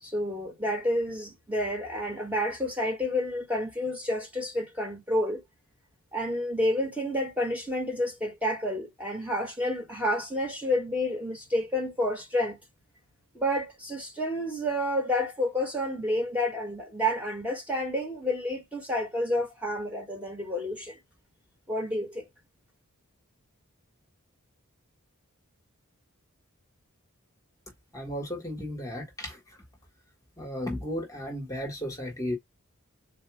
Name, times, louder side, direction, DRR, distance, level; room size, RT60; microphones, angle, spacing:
voice 1, 0.0-5.4 6.1-12.6 13.3-21.0 21.7-22.3, left 1 dB, 5° right, 1.6 m, -29 dB
voice 2, 27.9-29.4 30.4-32.4, equal, 15° left, 1.5 m, -34 dB
4.1 x 2.7 x 4.7 m
head